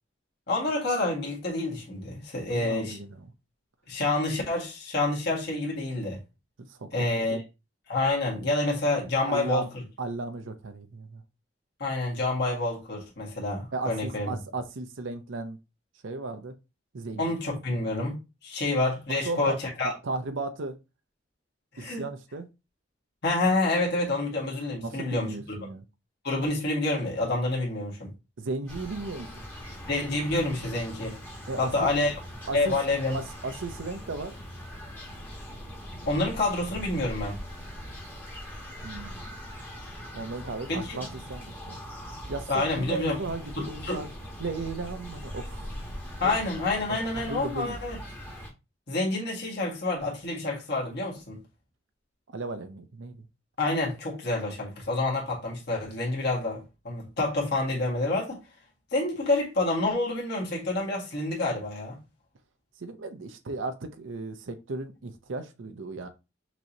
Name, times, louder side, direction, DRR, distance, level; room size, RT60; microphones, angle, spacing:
voice 1, 0.5-3.0 3.9-6.2 6.9-7.4 7.9-9.7 11.8-14.3 17.2-19.9 21.7-22.0 23.2-25.3 26.2-28.1 29.9-31.2 31.6-32.1 32.5-33.2 36.0-37.3 40.7-41.0 42.5-43.2 43.6-44.1 46.2-48.0 48.9-51.4 53.6-58.4 58.9-62.0, left 2 dB, 55° left, 1.7 m, -28 dB
voice 2, 2.4-3.3 6.7-7.4 9.2-9.7 10.0-11.2 13.7-15.6 16.0-16.5 16.9-17.3 19.1-19.6 19.8-20.8 21.8-22.5 24.8-25.8 28.4-29.3 31.5-31.9 32.5-32.8 33.1-34.4 38.8-39.3 40.1-41.8 42.3-44.1 44.4-45.8 46.2-46.3 46.9-47.8 52.3-53.2 62.8-66.1, right 3 dB, 80° right, 0.6 m, -35 dB
sound 1, 28.7-48.5, equal, 10° left, 1.1 m, -41 dB
6.1 x 3.0 x 2.7 m
head